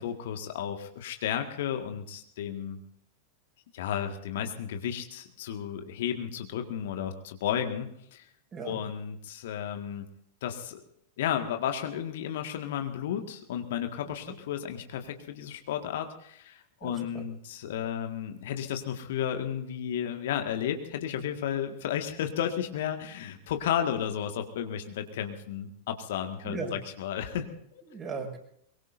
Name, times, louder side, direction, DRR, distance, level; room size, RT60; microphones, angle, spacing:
voice 1, 0.0-2.8 3.7-8.2 8.6-10.1 10.4-10.8 11.2-27.8, left 9 dB, 55° left, 5 dB, 1.8 m, -33 dB
voice 2, 8.5-8.8 14.1-14.3 16.8-17.2 26.4-26.8 27.8-28.4, right 4 dB, 25° right, 1 dB, 6.2 m, -38 dB
23.5 x 23.0 x 2.7 m, 0.71 s
figure-of-eight pair, 90°, 0 cm